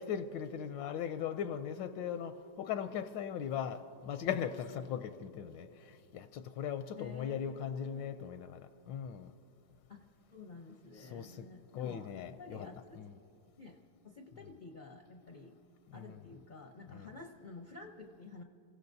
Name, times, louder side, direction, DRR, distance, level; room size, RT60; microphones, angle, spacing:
voice 1, 0.0-8.6 8.9-9.3 11.0-11.5 11.7-12.7 13.0-13.1 15.9-16.2 16.9-17.1, left 8 dB, 85° left, 10 dB, 1.3 m, -39 dB
voice 2, 6.9-8.1 9.9-10.0 10.3-13.0 13.6-13.8 14.0-15.6 15.9-18.4, left 3 dB, 55° left, 3 dB, 0.5 m, -51 dB
29.0 x 16.5 x 2.7 m, 2.7 s
omnidirectional pair, 2.0 m